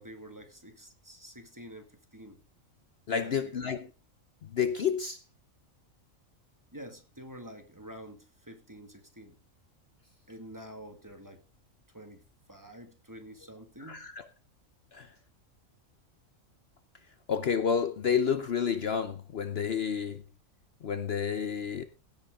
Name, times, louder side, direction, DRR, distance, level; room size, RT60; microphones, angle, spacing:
voice 1, 0.0-2.4 3.1-3.3 3.6-3.8 6.7-9.4 10.3-11.4 11.9-14.1, equal, 15° right, 1.9 m, -48 dB
voice 2, 3.1-3.9 4.4-5.2 13.8-14.2 14.9-15.1 17.3-20.2 20.8-21.8, left 7 dB, 55° left, 1.0 m, -30 dB
16.5 x 8.4 x 3.7 m
omnidirectional pair, 1.4 m